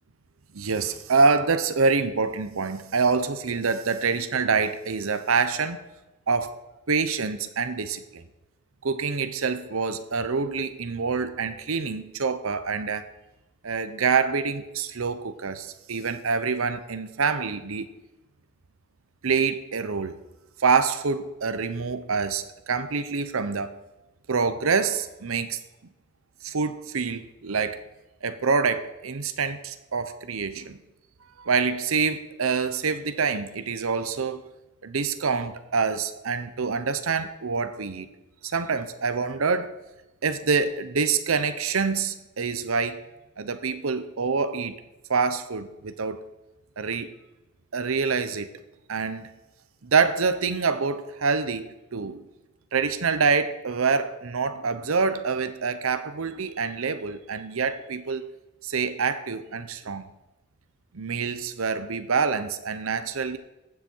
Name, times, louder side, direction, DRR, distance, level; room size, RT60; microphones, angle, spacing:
voice 1, 0.5-5.9 6.3-6.5 6.9-8.2 8.8-13.1 13.6-17.9 19.2-20.2 20.6-23.8 24.3-25.6 26.4-27.8 28.2-30.8 31.4-34.4 34.8-38.1 38.4-39.7 40.2-43.0 43.4-44.8 45.1-46.2 46.8-47.1 47.7-48.5 48.9-49.3 49.8-52.2 52.7-58.3 58.6-60.1 60.9-63.4, right 5 dB, 85° right, 11 dB, 0.8 m, -26 dB
15.0 x 7.2 x 4.5 m, 1.0 s
head